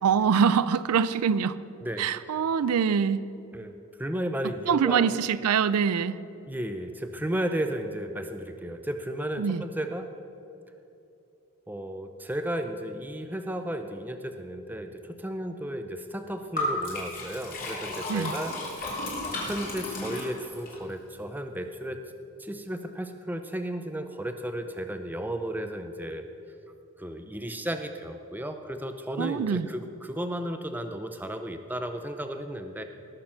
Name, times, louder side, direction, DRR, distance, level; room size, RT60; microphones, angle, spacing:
voice 1, 0.0-1.6 2.0-3.2 4.7-6.2 9.4-9.6 18.1-18.3 29.2-29.7, right 7 dB, 90° right, 16 dB, 0.4 m, -24 dB
voice 2, 1.8-2.4 3.5-3.7 4.0-5.1 6.5-10.1 11.7-18.5 19.4-22.0 22.4-26.2 27.0-32.8, right 1 dB, 10° right, 7 dB, 0.5 m, -34 dB
Liquid, 16.6-20.8, left 1 dB, 40° left, 2.9 m, -33 dB
19.5 x 6.7 x 5.8 m, 2.8 s
head